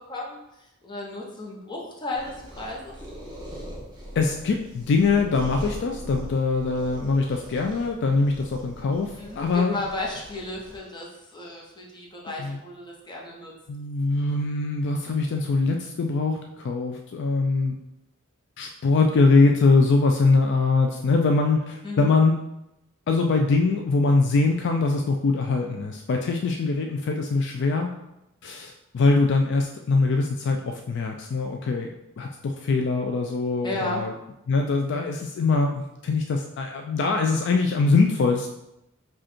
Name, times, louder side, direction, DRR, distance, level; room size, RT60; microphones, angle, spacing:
voice 1, 0.0-3.0 9.1-13.5 21.8-22.1 33.6-34.0, left 2 dB, 20° left, -3 dB, 0.9 m, -34 dB
sound 1, 2.1-10.8, equal, 20° right, 1.0 m, -41 dB
voice 2, 4.2-9.8 12.4-12.6 13.7-17.8 18.6-22.4 23.1-27.9 28.4-34.1 34.5-38.5, left 3 dB, 55° left, 3 dB, 0.3 m, -23 dB
4.9 x 2.4 x 4.3 m, 0.89 s
head